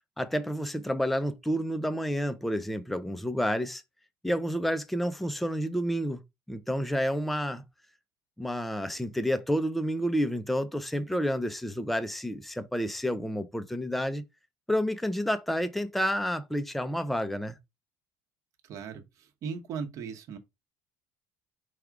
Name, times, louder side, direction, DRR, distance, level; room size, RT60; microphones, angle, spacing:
voice 1, 0.2-3.8 4.2-6.2 6.5-7.6 8.4-14.2 14.7-17.6, equal, ahead, 0.4 m, -29 dB
voice 2, 18.6-20.4, right 6 dB, 50° right, 1.0 m, -38 dB
4.9 x 2.3 x 4.7 m
cardioid pair, 135°, 7 cm